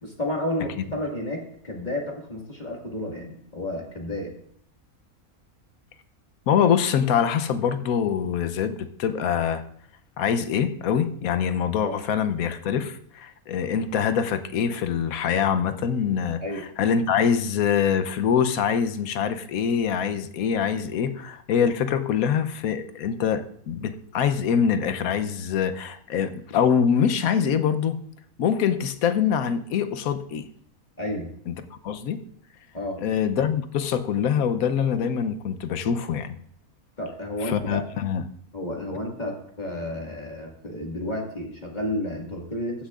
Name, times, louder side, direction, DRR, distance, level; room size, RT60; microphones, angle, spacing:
voice 1, 0.0-4.3 11.8-12.0 16.4-16.6 31.0-31.3 32.7-33.0 37.0-37.8 38.5-42.9, left 1 dB, 30° left, -1 dB, 1.9 m, -31 dB
voice 2, 6.5-9.6 10.2-16.4 16.8-28.0 28.4-30.5 31.5-31.6 31.8-32.2 33.0-36.3 37.4-38.2, left 7 dB, 80° left, 10 dB, 1.2 m, -24 dB
15.0 x 10.0 x 2.4 m, 0.65 s
omnidirectional pair, 1.5 m